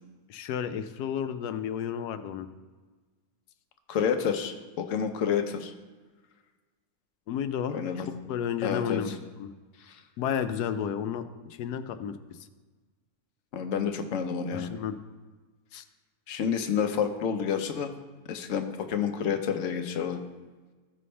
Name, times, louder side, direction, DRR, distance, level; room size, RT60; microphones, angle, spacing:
voice 1, 0.3-2.5 7.3-9.1 9.4-9.5 10.2-11.2 11.6-12.2 14.5-15.0 15.7-15.8, left 8 dB, 85° left, 10 dB, 1.2 m, -32 dB
voice 2, 3.9-5.7 7.7-8.1 8.6-9.1 9.9-10.0 13.5-14.7 16.3-17.9 18.3-20.2, left 7 dB, 60° left, 6 dB, 1.1 m, -29 dB
15.5 x 5.5 x 3.2 m, 1.3 s
omnidirectional pair, 1.7 m